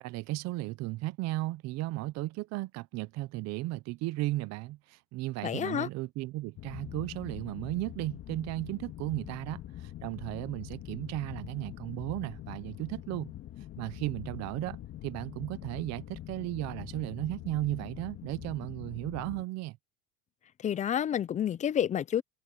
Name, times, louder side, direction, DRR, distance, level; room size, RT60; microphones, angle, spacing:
voice 1, 0.0-13.3 13.8-19.8, right 18 dB, 50° right, 0.8 m, -35 dB
voice 2, 5.4-5.9 20.6-22.2, left 9 dB, 20° left, 0.5 m, -29 dB
sound 1, 6.6-19.4, left 13 dB, 40° left, 2.3 m, -44 dB
supercardioid pair, 130°, 33 cm